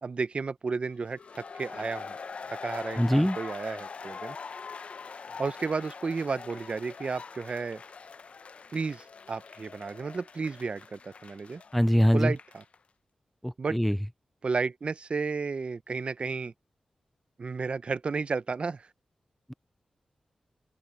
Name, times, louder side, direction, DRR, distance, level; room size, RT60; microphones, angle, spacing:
voice 1, 0.0-2.2 2.5-4.4 5.4-7.8 8.7-11.6 12.1-12.6 13.6-13.8 14.4-16.5 17.4-18.9, right 4 dB, 55° right, 0.8 m, -32 dB
sound 1, 1.1-12.8, left 5 dB, 65° left, 0.7 m, -43 dB
voice 2, 3.0-3.4 11.7-12.3 13.4-14.0, equal, ahead, 0.3 m, -23 dB
open air
cardioid pair, 50°, 2 cm